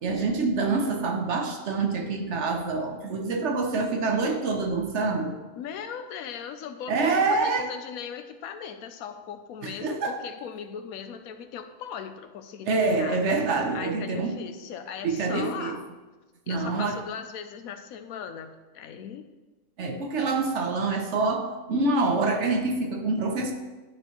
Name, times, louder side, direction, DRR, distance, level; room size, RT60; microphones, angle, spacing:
voice 1, 0.0-5.4 6.9-7.6 9.6-10.2 12.7-14.4 15.0-15.8 16.5-17.0 19.8-23.5, right 3 dB, 60° right, 4 dB, 1.0 m, -26 dB
voice 2, 5.6-13.2 13.7-15.9 16.5-19.3, left 7 dB, 85° left, 8 dB, 1.1 m, -38 dB
11.5 x 4.3 x 3.0 m, 1.2 s
omnidirectional pair, 1.5 m